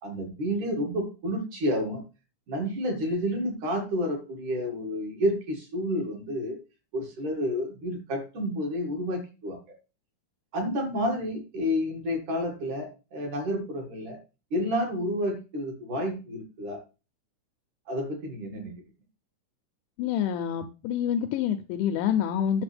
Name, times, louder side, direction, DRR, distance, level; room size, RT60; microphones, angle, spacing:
voice 1, 0.0-2.0 2.5-6.6 6.9-9.6 10.5-14.2 14.5-16.8 17.9-18.8, equal, 50° right, 1 dB, 2.8 m, -30 dB
voice 2, 20.0-22.6, left 9 dB, 85° left, 7 dB, 2.7 m, -27 dB
10.5 x 6.5 x 3.4 m, 0.31 s
omnidirectional pair, 5.8 m